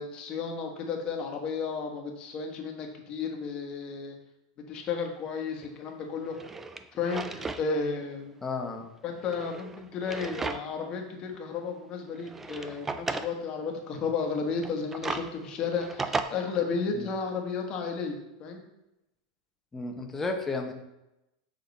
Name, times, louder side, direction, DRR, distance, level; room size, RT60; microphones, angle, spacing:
voice 1, 0.0-4.1 4.7-6.4 6.9-8.3 9.0-18.6, left 5 dB, 35° left, 2 dB, 1.3 m, -33 dB
Drawer open or close, 5.6-5.7 6.2-7.7 8.0-8.1 9.2-10.9 11.3-11.4 12.2-13.3 14.5-16.2, right 3 dB, 10° right, 0.3 m, -35 dB
voice 2, 8.4-8.9 16.9-17.1 19.7-20.7, left 3 dB, 10° left, 3 dB, 0.8 m, -33 dB
7.0 x 3.8 x 4.1 m, 0.92 s
supercardioid pair, 135°, 3 cm